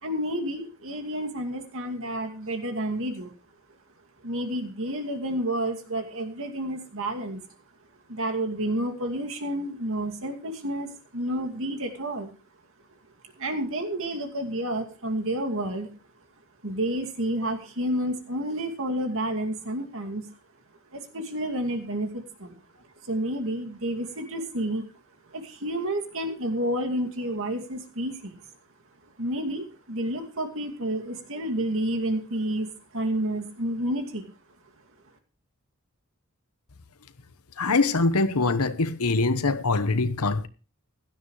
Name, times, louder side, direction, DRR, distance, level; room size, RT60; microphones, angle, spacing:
voice 1, 0.0-3.3 4.2-7.4 8.1-12.3 13.4-15.9 16.6-20.2 20.9-22.5 23.0-24.9 25.3-28.4 29.2-34.2, right 1 dB, 65° right, 2.4 m, -30 dB
voice 2, 37.6-40.5, left 3 dB, 75° left, 1.1 m, -23 dB
16.5 x 12.5 x 3.2 m
head